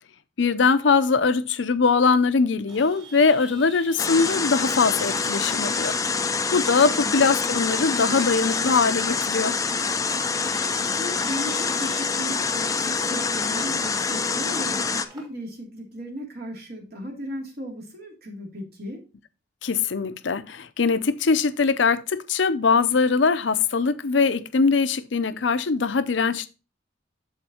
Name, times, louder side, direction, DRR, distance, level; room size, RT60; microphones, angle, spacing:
voice 1, 0.4-5.9 6.5-9.5 19.6-26.5, left 4 dB, 75° left, 0.6 m, -21 dB
Chatter / Vehicle horn car horn honking / Traffic noise roadway noise, 2.7-15.3, right 1 dB, 25° right, 2.6 m, -47 dB
sound 1, 4.0-15.0, left 5 dB, 20° left, 0.4 m, -26 dB
voice 2, 6.7-7.2 11.0-19.0, equal, 55° right, 2.7 m, -36 dB
13.0 x 4.4 x 2.9 m
head